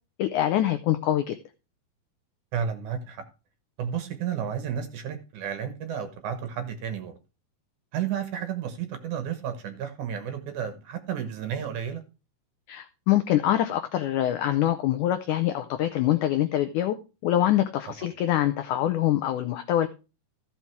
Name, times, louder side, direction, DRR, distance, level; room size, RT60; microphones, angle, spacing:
voice 1, 0.2-1.4 12.7-17.0 17.2-19.9, left 12 dB, 90° left, 9 dB, 1.7 m, -24 dB
voice 2, 2.5-3.2 3.8-7.2 7.9-12.0, right 8 dB, 65° right, 9 dB, 2.2 m, -32 dB
14.5 x 5.7 x 4.6 m, 0.31 s
omnidirectional pair, 4.4 m